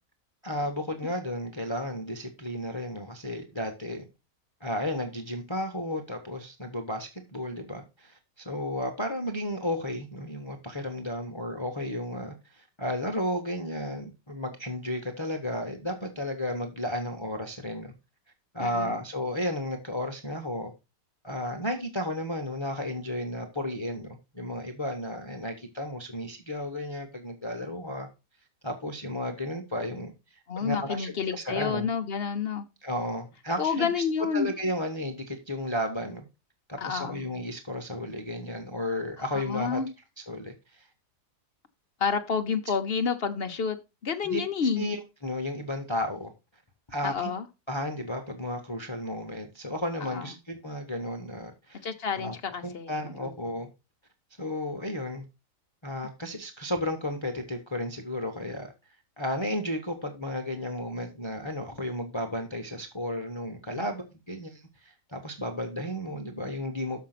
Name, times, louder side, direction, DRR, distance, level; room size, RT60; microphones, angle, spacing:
voice 1, 0.4-4.1 4.6-17.9 18.5-20.7 21.2-28.1 28.6-31.9 32.8-34.0 34.3-36.2 36.7-39.8 40.3-40.9 44.2-44.4 44.8-46.3 46.9-47.3 47.7-51.8 52.2-52.3 52.6-53.7 54.4-55.2 55.8-58.7 59.2-67.0, left 1 dB, 20° left, 0.9 m, -33 dB
voice 2, 18.6-18.9 30.5-32.6 33.6-34.5 36.8-37.2 39.3-39.9 42.0-43.8 44.0-44.9 47.0-47.5 50.0-50.3 51.8-53.3 63.8-63.9, left 6 dB, 50° left, 0.8 m, -29 dB
6.6 x 5.7 x 5.8 m
omnidirectional pair, 1.8 m